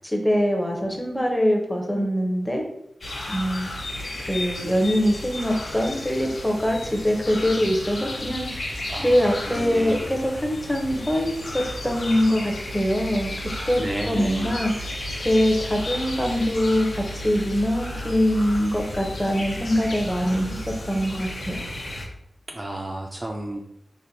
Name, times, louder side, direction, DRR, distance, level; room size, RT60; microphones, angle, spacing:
voice 1, 0.1-2.6 3.3-3.7 4.3-8.7 9.0-13.3 13.7-14.7 15.2-20.6 20.9-21.6, equal, 10° left, 1 dB, 0.6 m, -23 dB
sound 1, 3.0-22.1, left 1 dB, 70° left, 0.7 m, -33 dB
voice 2, 8.9-10.1 13.8-14.6 22.5-23.6, right 1 dB, 25° right, 1 dB, 0.3 m, -32 dB
4.2 x 2.5 x 2.6 m, 0.76 s
wide cardioid pair, 110°, 0 cm